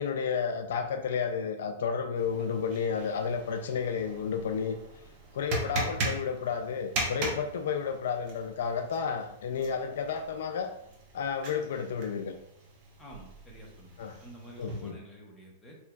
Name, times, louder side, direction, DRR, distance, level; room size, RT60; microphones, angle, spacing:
voice 1, 0.0-4.8 5.3-10.7 11.1-12.3 14.0-14.2 14.6-15.0, left 6 dB, 75° left, 6 dB, 0.3 m, -31 dB
sound 1, 2.2-14.9, right 2 dB, 40° right, 0.8 m, -39 dB
voice 2, 13.0-15.8, right 1 dB, 5° left, -3 dB, 0.9 m, -50 dB
3.5 x 2.9 x 2.3 m, 0.77 s
hypercardioid pair, 140°, 0 cm